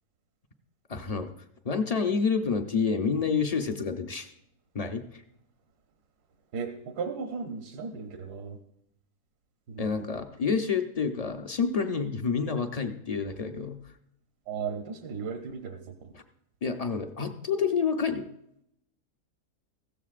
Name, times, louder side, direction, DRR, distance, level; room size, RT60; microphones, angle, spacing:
voice 1, 0.9-1.3 1.6-4.3 4.7-5.2 9.8-13.8 16.1-16.2 16.6-18.3, left 5 dB, 45° left, 6 dB, 0.5 m, -28 dB
voice 2, 6.5-8.6 9.7-10.1 14.5-16.1, right 5 dB, 80° right, 4 dB, 1.5 m, -36 dB
15.0 x 14.0 x 2.5 m, 0.76 s
omnidirectional pair, 1.7 m